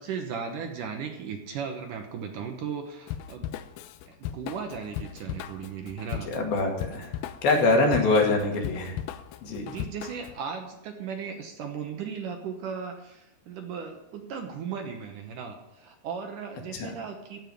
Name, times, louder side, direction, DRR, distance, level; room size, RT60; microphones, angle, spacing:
voice 1, 0.0-3.5 4.1-6.3 7.8-8.4 9.6-17.4, right 6 dB, 70° right, 4 dB, 2.2 m, -36 dB
Drum kit / Drum, 3.1-10.4, left 11 dB, 85° left, 2.1 m, -37 dB
voice 2, 6.3-9.0 9.4-9.7 16.8-16.9, left 3 dB, 65° left, 1 dB, 3.9 m, -24 dB
15.5 x 5.5 x 9.9 m, 0.92 s
omnidirectional pair, 4.8 m